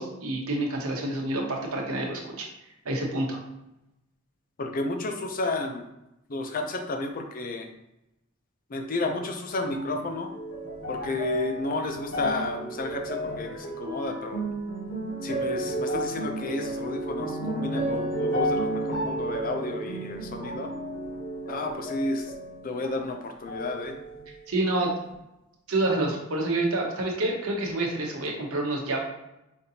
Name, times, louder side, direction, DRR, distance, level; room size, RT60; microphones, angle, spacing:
voice 1, 0.0-2.5 2.8-3.4 24.5-24.9 25.7-29.0, right 2 dB, 80° right, 0 dB, 0.9 m, -28 dB
voice 2, 4.6-5.8 6.3-7.7 8.7-10.3 10.9-14.4 15.2-20.7 21.5-22.3 22.6-24.0, left 2 dB, 40° left, 4 dB, 0.5 m, -31 dB
sound 1, 9.7-23.1 23.5-24.4 25.1-25.2, right 1 dB, 60° left, 1.0 m, -32 dB
5.1 x 2.6 x 2.8 m, 0.90 s
head